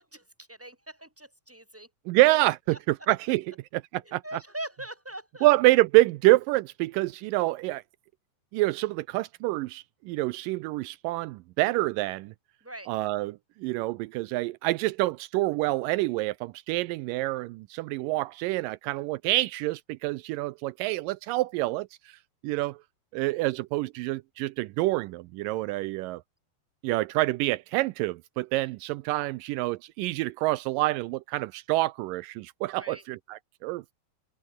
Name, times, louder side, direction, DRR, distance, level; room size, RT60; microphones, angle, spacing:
voice 1, 0.0-1.9 2.7-2.8 4.0-5.5 12.6-12.9 32.8-33.0, right 1 dB, 5° right, 4.9 m, -41 dB
voice 2, 2.1-4.2 5.4-7.8 8.5-12.3 12.9-22.2 22.4-22.8 23.1-26.2 26.8-33.9, right 19 dB, 90° right, 1.9 m, -27 dB
omnidirectional pair, 4.5 m